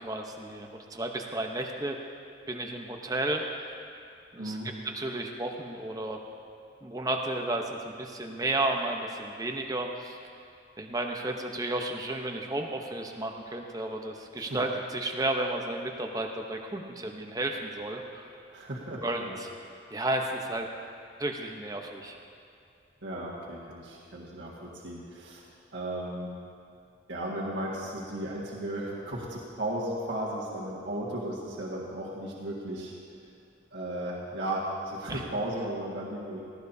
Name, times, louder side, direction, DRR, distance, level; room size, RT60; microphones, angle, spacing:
voice 1, 0.0-2.0 2.5-3.4 4.3-4.6 4.8-6.2 6.8-10.2 10.8-18.2 19.0-19.5 19.9-20.7 21.2-22.2 35.1-35.2, right 2 dB, 20° right, 2 dB, 0.9 m, -32 dB
voice 2, 4.4-4.7 14.3-14.6 18.5-19.4 23.0-25.4 25.7-26.3 27.1-32.9 33.7-36.4, right 1 dB, 75° right, -6 dB, 1.8 m, -35 dB
18.5 x 15.0 x 2.8 m, 2.5 s
head